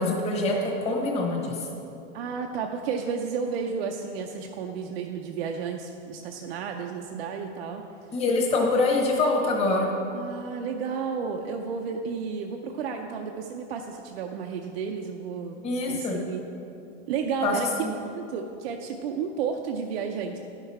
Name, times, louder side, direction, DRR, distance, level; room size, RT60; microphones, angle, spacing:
voice 1, 0.0-1.7 8.1-9.9 15.6-16.2 17.4-17.9, left 2 dB, 15° left, -1 dB, 1.1 m, -25 dB
voice 2, 2.1-7.8 10.1-15.6 15.9-16.4 17.1-17.7 18.1-20.4, right 6 dB, 55° right, 3 dB, 0.6 m, -32 dB
10.0 x 5.9 x 4.2 m, 2.7 s
supercardioid pair, 155°, 35 cm